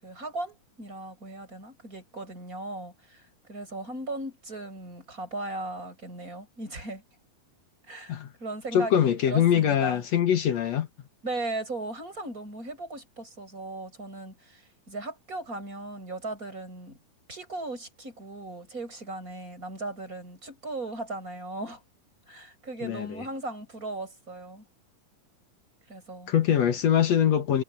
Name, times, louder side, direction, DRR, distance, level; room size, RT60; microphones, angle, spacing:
voice 1, 0.0-7.0 7.9-10.0 11.2-17.0 17.3-21.8 22.3-24.6 25.9-26.3, right 2 dB, 25° right, 8.3 m, -37 dB
voice 2, 8.7-10.9 22.8-23.2 26.3-27.6, left 9 dB, 60° left, 2.2 m, -23 dB
omnidirectional pair, 3.8 m